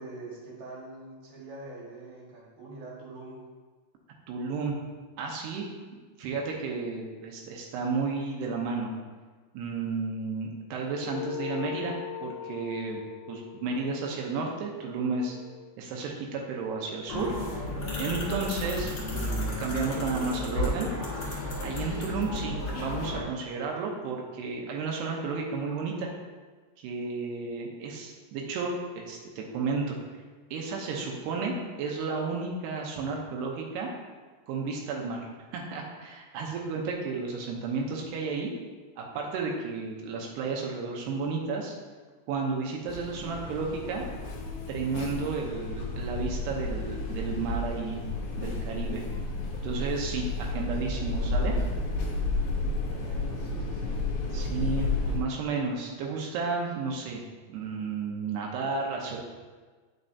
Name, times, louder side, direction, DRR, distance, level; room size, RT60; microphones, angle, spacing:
voice 1, 0.0-3.4 50.4-51.3 52.9-54.0, right 3 dB, 60° right, -5 dB, 3.0 m, -44 dB
voice 2, 4.3-4.8 5.2-5.7 6.2-8.9 9.5-12.0 12.2-13.0 13.3-15.4 15.8-17.3 18.0-20.9 21.6-26.1 26.8-30.0 30.5-33.9 34.5-38.5 39.0-41.7 42.3-44.0 44.7-48.0 48.4-49.0 49.6-51.6 54.3-59.2, right 4 dB, 80° right, 0 dB, 2.8 m, -32 dB
sound 1, 10.9-15.7, left 9 dB, 90° left, 2.8 m, -40 dB
sound 2, 17.1-23.2, left 1 dB, 55° left, 1.5 m, -32 dB
sound 3, 42.9-55.2, left 2 dB, 70° left, 2.3 m, -32 dB
9.0 x 6.4 x 2.7 m, 1.4 s
omnidirectional pair, 5.0 m